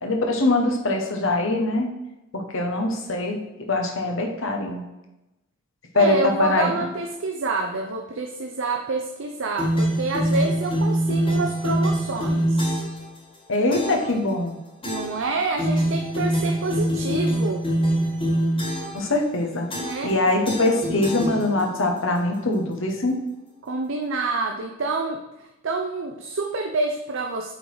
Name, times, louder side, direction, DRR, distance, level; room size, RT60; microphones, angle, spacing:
voice 1, 0.0-1.9 2.3-3.4 3.7-4.8 5.9-6.7 13.5-14.6 18.9-19.7 20.0-23.2, left 2 dB, 65° left, 2 dB, 1.2 m, -23 dB
voice 2, 5.9-12.8 14.8-17.6 19.7-20.1 23.6-25.2 25.6-27.5, right 3 dB, 65° right, 4 dB, 0.6 m, -27 dB
sound 1, 9.6-13.0 13.7-14.1 14.8-15.2 15.6-19.0 19.7-20.1 20.4-21.8, right 1 dB, 25° left, 1.8 m, -24 dB
8.0 x 3.9 x 4.8 m, 0.97 s
head